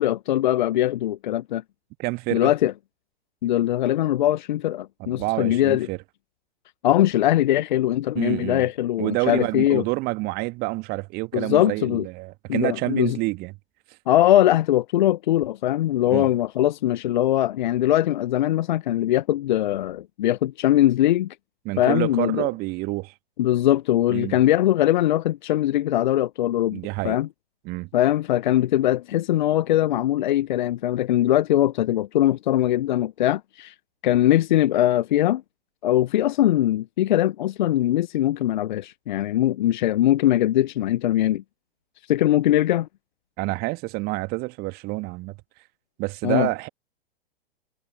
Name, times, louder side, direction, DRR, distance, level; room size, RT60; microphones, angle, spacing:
voice 1, 0.0-1.6 2.3-2.7 3.4-5.9 6.8-9.8 11.3-12.1 12.5-13.2 14.1-21.3 21.8-22.5 23.4-27.3 27.9-33.7 34.0-35.4 35.8-41.4 42.1-42.9 46.2-46.5, left 13 dB, 50° left, 1.1 m, -21 dB
voice 2, 2.0-2.5 5.0-6.0 8.2-8.6 9.0-13.5 16.1-16.3 21.7-23.1 24.1-24.4 26.7-27.2 27.7-27.9 43.4-45.4 46.0-46.7, right 23 dB, 30° right, 1.8 m, -28 dB
figure-of-eight pair, 105°, 30 cm